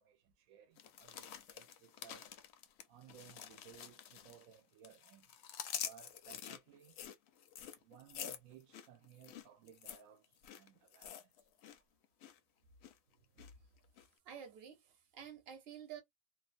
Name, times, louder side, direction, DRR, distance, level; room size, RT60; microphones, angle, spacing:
voice 1, 0.0-2.3 2.9-5.3 5.8-7.0 7.7-11.5, right 9 dB, 80° right, 1.0 m, -60 dB
sound 1, 0.8-4.6 4.8-11.8 12.0-12.4 12.8-13.5 14.0-14.1, left 9 dB, 65° left, 0.7 m, -48 dB
voice 2, 13.2-13.5 14.2-16.0, right 8 dB, 50° right, 0.9 m, -51 dB
2.7 x 2.2 x 2.5 m
omnidirectional pair, 1.4 m